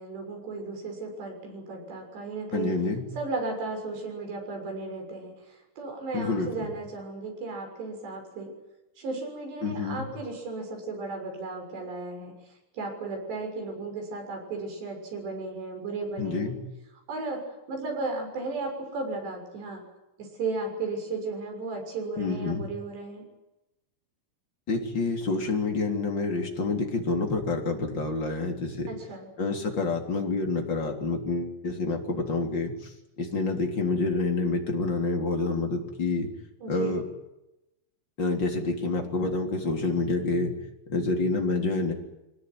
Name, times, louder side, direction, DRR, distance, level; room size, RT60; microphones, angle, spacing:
voice 1, 0.0-2.7 3.1-8.5 9.0-12.4 12.7-16.6 17.1-19.8 20.2-23.2 28.9-29.3 36.6-37.0, right 3 dB, 60° right, 3 dB, 8.6 m, -35 dB
voice 2, 2.5-3.0 6.1-6.5 9.6-10.0 16.2-16.6 22.2-22.7 24.7-28.9 29.4-32.7 33.2-36.3 36.7-37.0 38.2-40.5 40.9-41.9, left 3 dB, 25° left, 2 dB, 3.6 m, -28 dB
24.5 x 20.0 x 9.9 m, 0.93 s
omnidirectional pair, 5.7 m